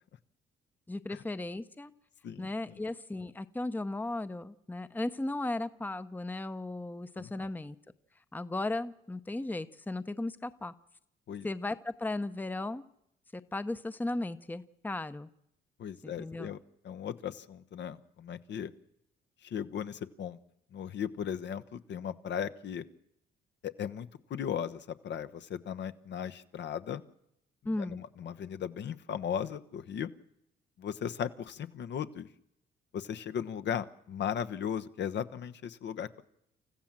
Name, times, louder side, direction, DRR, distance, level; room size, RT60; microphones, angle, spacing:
voice 1, 0.9-1.9 2.4-7.8 8.3-10.7 11.4-12.8 13.3-15.3 16.0-16.5 27.6-28.0, left 2 dB, 10° left, 12 dB, 0.7 m, -36 dB
voice 2, 2.2-2.8 7.2-7.5 11.3-11.5 15.8-16.6 16.8-18.7 19.4-20.4 20.7-22.8 23.6-27.0 27.9-30.1 30.8-32.3 32.9-36.2, left 8 dB, 65° left, 11 dB, 1.0 m, -37 dB
28.0 x 14.5 x 7.4 m, 0.80 s
cardioid pair, 90°, 20 cm